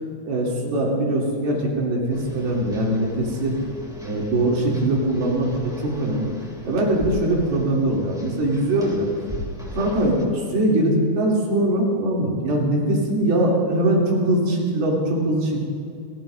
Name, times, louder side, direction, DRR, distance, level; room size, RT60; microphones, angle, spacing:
voice 1, 0.3-3.6 4.0-6.3 6.7-9.1 9.7-15.7, right 1 dB, 80° right, -3 dB, 4.7 m, -22 dB
sound 1, 2.1-10.2, equal, 5° right, 0.4 m, -38 dB
28.5 x 15.0 x 2.6 m, 2.5 s
omnidirectional pair, 4.4 m